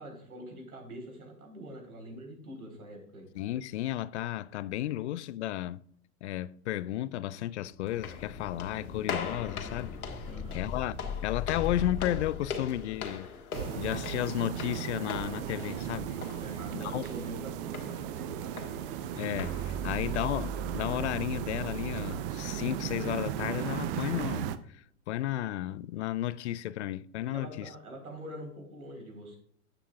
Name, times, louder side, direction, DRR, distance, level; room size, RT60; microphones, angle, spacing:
voice 1, 0.0-3.3 10.2-10.7 16.4-18.7 19.8-20.3 27.3-29.4, equal, 85° right, 4.1 m, -45 dB
voice 2, 3.3-5.8 6.2-10.0 10.5-11.0 11.2-13.3 13.8-16.2 16.7-17.0 19.2-27.7, left 13 dB, 55° left, 0.4 m, -33 dB
sound 1, 7.7-13.3, left 6 dB, 20° left, 1.7 m, -39 dB
sound 2, 7.9-20.9, left 6 dB, 80° left, 1.7 m, -43 dB
sound 3, 13.5-24.6, right 9 dB, 40° right, 0.6 m, -35 dB
11.0 x 8.9 x 2.4 m
hypercardioid pair, 115°, 43 cm